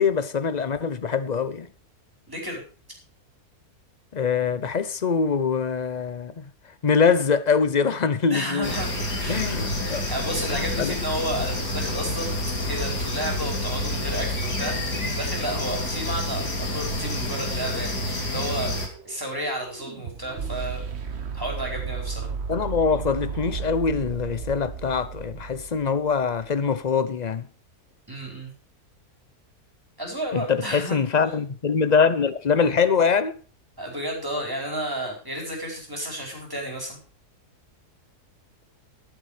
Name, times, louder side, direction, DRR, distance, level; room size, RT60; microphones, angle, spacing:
voice 1, 0.0-1.7 4.1-6.5 6.8-8.7 9.3-10.1 10.5-11.0 22.5-27.5 30.3-33.4, left 5 dB, 40° left, 0.6 m, -23 dB
voice 2, 2.3-2.6 8.3-9.5 10.1-12.4 12.7-18.0 18.3-18.7 19.0-20.8 21.3-22.3 28.1-28.5 30.0-31.0 33.8-37.0, right 1 dB, 15° right, 4.6 m, -32 dB
sound 1, 8.6-18.9, left 1 dB, 85° left, 3.4 m, -28 dB
sound 2, 18.2-26.3, right 6 dB, 45° right, 1.3 m, -34 dB
12.5 x 9.3 x 5.0 m
omnidirectional pair, 1.7 m